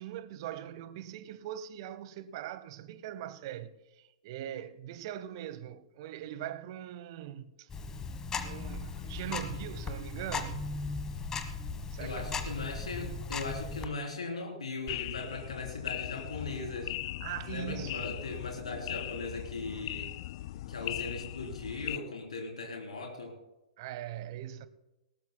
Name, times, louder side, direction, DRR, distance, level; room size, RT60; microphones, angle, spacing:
voice 1, 0.0-7.7 8.4-10.7 11.9-12.3 17.2-18.0 23.8-24.7, right 12 dB, 45° right, 0.8 m, -41 dB
Tick-tock, 7.7-13.9, left 4 dB, 15° left, 1.2 m, -37 dB
voice 2, 12.0-16.9 17.5-20.1 20.7-23.4, left 3 dB, 70° left, 3.4 m, -38 dB
sound 1, 14.9-22.0, left 16 dB, 45° left, 0.3 m, -39 dB
19.5 x 18.0 x 2.2 m
figure-of-eight pair, 110°, 4 cm